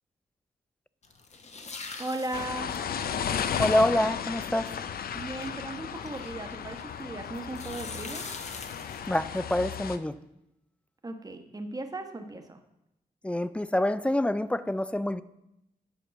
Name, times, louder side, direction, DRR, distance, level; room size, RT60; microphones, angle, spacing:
sound 1, 1.0-7.0 7.3-9.7, left 4 dB, 50° left, 1.0 m, -44 dB
voice 1, 2.0-2.7 5.1-8.3 11.0-12.6, right 2 dB, 25° right, 6 dB, 1.1 m, -37 dB
sound 2, 2.3-10.0, left 8 dB, 85° left, 0.5 m, -34 dB
voice 2, 3.6-4.7 9.1-10.2 13.2-15.2, left 1 dB, 10° left, 15 dB, 0.3 m, -26 dB
8.8 x 5.3 x 6.8 m, 0.87 s
wide cardioid pair, 115°, 15 cm